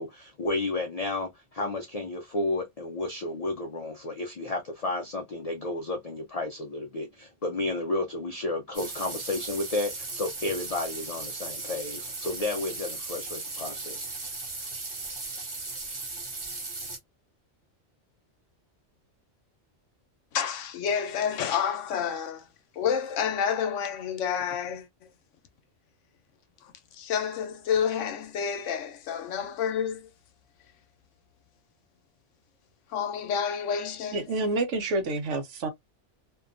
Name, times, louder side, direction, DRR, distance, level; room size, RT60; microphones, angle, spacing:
voice 1, 0.0-14.1, left 2 dB, 70° left, 0.3 m, -32 dB
sound 1, 8.7-17.0, right 3 dB, 30° right, 0.7 m, -37 dB
voice 2, 20.3-22.5 22.8-24.9 26.9-30.1 32.9-34.3, left 7 dB, 90° left, 0.9 m, -29 dB
voice 3, 34.1-35.7, right 2 dB, 85° right, 1.0 m, -28 dB
2.6 x 2.2 x 2.4 m
omnidirectional pair, 1.2 m